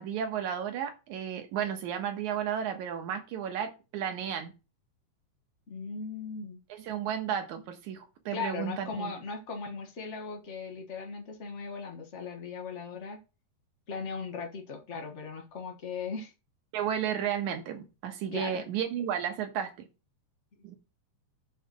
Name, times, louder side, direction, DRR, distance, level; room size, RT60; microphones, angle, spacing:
voice 1, 0.0-4.5 6.7-9.1 16.7-19.9 20.6-20.8, right 8 dB, 70° right, 6 dB, 2.6 m, -33 dB
voice 2, 5.7-6.6 8.3-13.2 13.9-16.3 18.3-18.6, left 5 dB, 90° left, 2 dB, 0.6 m, -38 dB
8.0 x 4.2 x 6.2 m, 0.30 s
omnidirectional pair, 3.7 m